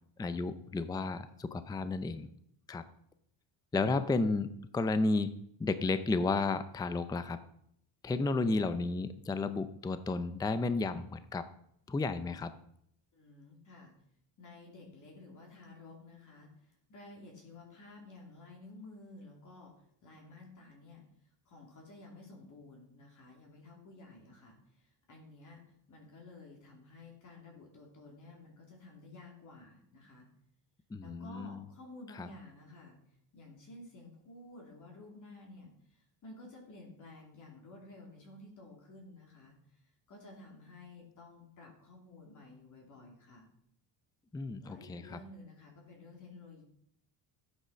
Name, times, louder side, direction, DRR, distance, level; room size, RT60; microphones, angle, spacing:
voice 1, 0.2-2.3 2.7-2.8 3.7-5.3 5.6-7.4 8.0-11.5 11.9-12.5 30.9-31.6 32.2-32.3 44.3-45.2, left 3 dB, 10° left, 12 dB, 0.5 m, -32 dB
voice 2, 13.1-13.9 14.4-21.0 21.4-25.6 25.9-30.3 31.0-43.5 44.6-46.6, left 2 dB, 45° left, 0 dB, 2.9 m, -53 dB
13.5 x 8.3 x 6.2 m, 0.71 s
cardioid pair, 170°, 44 cm